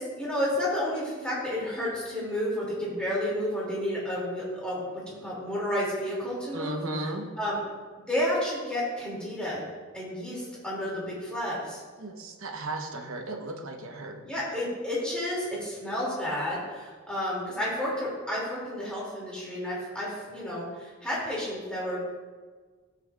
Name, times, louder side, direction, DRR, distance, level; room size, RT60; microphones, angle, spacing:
voice 1, 0.0-7.6 8.1-9.6 9.9-11.8 14.2-22.0, left 1 dB, 5° left, -7 dB, 2.6 m, -31 dB
voice 2, 6.5-7.3 12.0-14.2, right 2 dB, 70° right, 3 dB, 1.0 m, -35 dB
13.0 x 8.4 x 2.4 m, 1.5 s
head